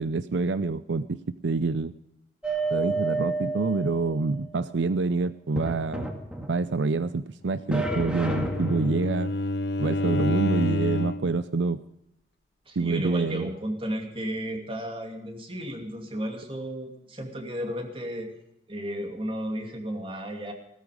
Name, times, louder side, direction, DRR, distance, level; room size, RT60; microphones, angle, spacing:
voice 1, 0.0-1.9 2.7-6.1 6.4-9.3 9.8-11.8 12.8-13.5, right 3 dB, 80° right, 15 dB, 0.5 m, -27 dB
sound 1, 2.4-4.4 5.6-6.8 7.7-9.1, right 2 dB, 5° right, 1.9 m, -30 dB
Bowed string instrument, 7.7-11.4, left 2 dB, 70° left, 0.8 m, -29 dB
voice 2, 12.7-18.3 18.7-20.5, equal, 30° right, 4 dB, 2.6 m, -34 dB
17.0 x 13.5 x 5.1 m, 0.80 s
head